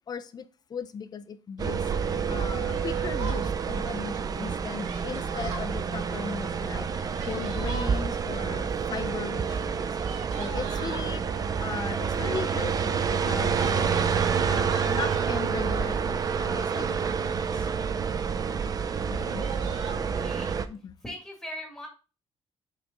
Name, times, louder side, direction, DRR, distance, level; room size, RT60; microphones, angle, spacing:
voice 1, 0.1-1.8 2.3-6.9 7.3-9.9 10.4-11.2 11.6-14.0 14.5-17.7 19.1-19.5 20.7-20.9, left 6 dB, 35° left, 0.6 m, -37 dB
sound 1, 1.6-20.7, right 6 dB, 30° right, 0.5 m, -28 dB
Yell, 2.7-3.5 4.8-5.7 6.9-8.0 9.3-11.1 11.9-12.4 12.7-15.3 16.2-16.8 17.4-17.9 18.3-18.4 18.7-18.8 19.1-20.0, right 5 dB, 90° right, 1.9 m, -41 dB
voice 2, 20.0-20.6 21.0-21.9, equal, 5° left, 2.3 m, -41 dB
6.5 x 5.2 x 3.8 m
cardioid pair, 165°, 12 cm